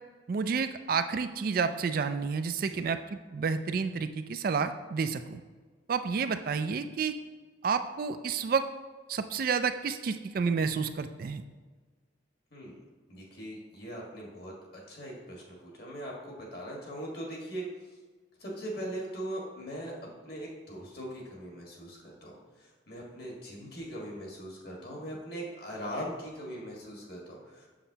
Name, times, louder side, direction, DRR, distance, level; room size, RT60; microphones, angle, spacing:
voice 1, 0.3-3.0 3.3-5.4 5.9-7.2 7.6-8.7 9.1-11.4, right 5 dB, 45° right, 9 dB, 0.3 m, -30 dB
voice 2, 12.5-12.8 13.1-14.5 14.9-18.0 18.4-19.9 20.2-27.7, right 1 dB, 50° left, -2 dB, 1.6 m, -40 dB
7.2 x 6.8 x 2.8 m, 1.4 s
head